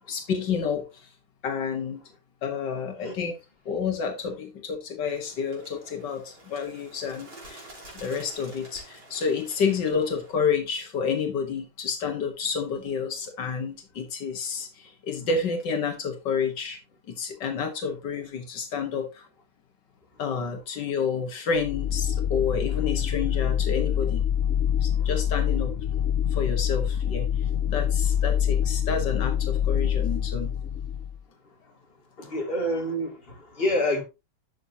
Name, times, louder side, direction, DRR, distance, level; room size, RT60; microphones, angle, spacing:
voice 1, 0.1-1.1 1.4-2.0 2.4-3.3 3.7-7.7 8.0-16.8 17.1-19.2 20.2-24.2 24.8-25.7 26.3-30.5, left 6 dB, 85° left, 2.0 m, -29 dB
Bird, 5.0-10.3, right 1 dB, 80° right, 3.8 m, -48 dB
sound 1, 21.6-31.2, left 9 dB, 65° left, 0.8 m, -26 dB
voice 2, 32.2-34.0, left 1 dB, 30° left, 2.7 m, -28 dB
11.5 x 6.4 x 2.8 m
omnidirectional pair, 1.9 m